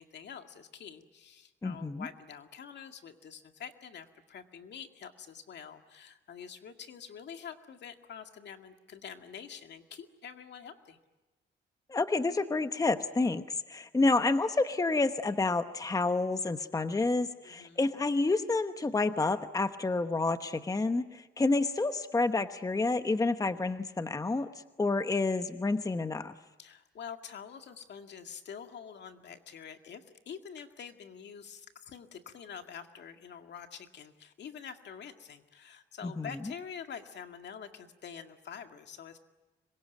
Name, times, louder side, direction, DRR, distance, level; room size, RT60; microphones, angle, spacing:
voice 1, 0.0-11.0 17.4-17.8 26.6-39.2, left 7 dB, 60° left, 6 dB, 2.0 m, -46 dB
voice 2, 1.6-2.1 11.9-24.5 24.8-26.3 36.0-36.3, left 3 dB, 15° left, 9 dB, 1.0 m, -29 dB
26.0 x 23.0 x 9.2 m, 1.1 s
cardioid pair, 90°, 20 cm